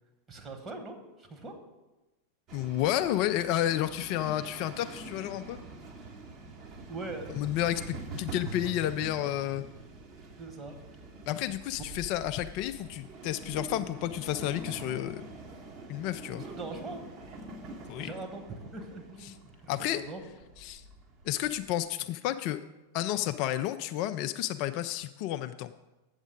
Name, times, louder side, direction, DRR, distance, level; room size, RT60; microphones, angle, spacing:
voice 1, 0.3-1.6 6.9-7.3 7.9-8.0 10.4-10.7 11.8-11.9 16.4-17.0 18.0-20.2, right 3 dB, 20° right, 3 dB, 1.4 m, -42 dB
voice 2, 2.5-5.6 7.4-9.6 11.3-15.2 15.9-16.4 17.9-18.1 19.7-20.0 20.6-20.8 21.3-22.6 22.9-25.7, left 13 dB, 45° left, 10 dB, 0.3 m, -31 dB
sound 1, 2.5-21.7, right 3 dB, 35° right, 1.3 m, -45 dB
8.0 x 7.2 x 5.1 m, 1.1 s
figure-of-eight pair, 90°, 0 cm